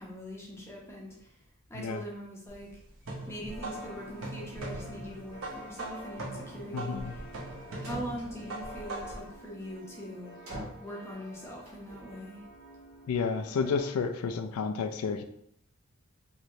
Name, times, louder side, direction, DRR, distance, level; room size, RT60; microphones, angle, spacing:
voice 1, 0.0-1.4 1.7-2.8 3.3-7.2 7.8-10.4 10.8-12.4, equal, 10° left, -2 dB, 0.5 m, -42 dB
sound 1, 2.5-9.3, right 1 dB, 60° right, 0.7 m, -41 dB
sound 2, 3.5-14.0, right 1 dB, 45° left, 0.9 m, -50 dB
voice 2, 6.7-7.1 13.1-15.2, left 5 dB, 85° left, 8 dB, 0.3 m, -31 dB
sound 3, 7.5-7.6 7.8-8.7 10.5-10.9 11.6-12.1, equal, 80° right, 1.3 m, -42 dB
3.1 x 2.9 x 2.6 m, 0.73 s
head